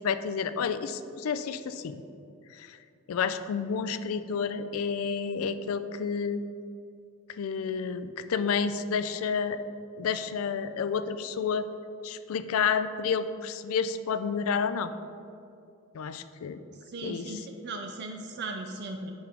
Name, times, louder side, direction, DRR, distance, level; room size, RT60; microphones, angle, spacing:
voice 1, 0.0-2.0 2.5-2.8 3.1-6.4 7.3-9.6 10.0-11.7 12.0-14.9 15.9-16.6 17.0-17.5, left 6 dB, 75° left, 12 dB, 0.4 m, -30 dB
voice 2, 16.9-19.1, right 2 dB, 50° right, 3 dB, 0.4 m, -37 dB
10.5 x 3.8 x 3.4 m, 2.5 s
head